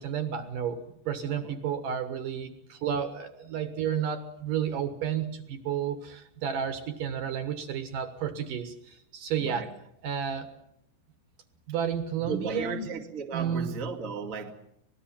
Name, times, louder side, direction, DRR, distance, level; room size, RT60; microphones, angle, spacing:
voice 1, 0.0-9.7 10.0-10.5 11.7-12.9 13.3-13.7, right 8 dB, 60° right, 2.6 m, -31 dB
voice 2, 1.2-1.6 9.4-9.7 12.2-14.5, right 5 dB, 40° right, 1.1 m, -35 dB
25.5 x 20.0 x 7.4 m
omnidirectional pair, 5.0 m